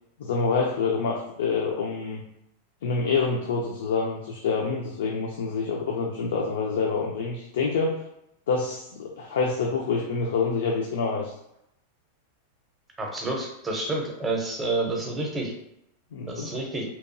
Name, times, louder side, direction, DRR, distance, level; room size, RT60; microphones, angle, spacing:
voice 1, 0.2-2.2 2.8-8.0 8.5-11.3 16.1-16.6, left 4 dB, 85° left, -1 dB, 0.4 m, -27 dB
voice 2, 13.0-15.5 16.3-16.8, right 2 dB, 10° right, 0 dB, 0.5 m, -29 dB
2.8 x 2.2 x 2.5 m, 0.80 s
supercardioid pair, 150°, 0 cm